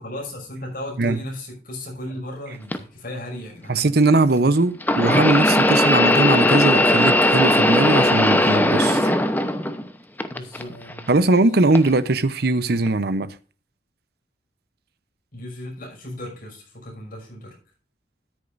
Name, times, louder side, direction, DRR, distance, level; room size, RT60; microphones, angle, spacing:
voice 1, 0.0-4.0 10.3-11.1 15.3-17.6, left 1 dB, 50° left, 5.7 m, -35 dB
sound 1, 2.7-2.8 4.8-9.9 10.2-11.0 11.7-11.9 12.9-13.0, left 1 dB, 10° left, 0.8 m, -18 dB
voice 2, 3.7-9.1 11.1-13.3, right 2 dB, 60° right, 0.8 m, -20 dB
13.5 x 10.0 x 2.6 m
head